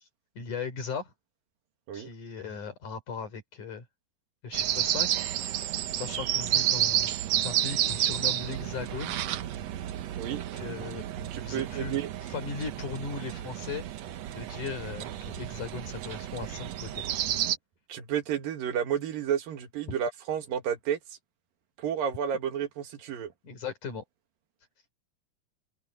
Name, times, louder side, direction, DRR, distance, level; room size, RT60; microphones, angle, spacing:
voice 1, 0.4-1.1 1.9-3.9 4.4-7.1 7.4-9.2 10.3-11.1 11.4-12.0 12.3-13.8 14.3-17.0 23.4-24.0, left 5 dB, 65° left, 6.0 m, -38 dB
sound 1, 4.5-17.6, right 11 dB, 65° right, 1.8 m, -31 dB
voice 2, 11.2-12.1 17.9-21.0 21.8-23.3, right 9 dB, 90° right, 3.7 m, -31 dB
open air
omnidirectional pair, 3.9 m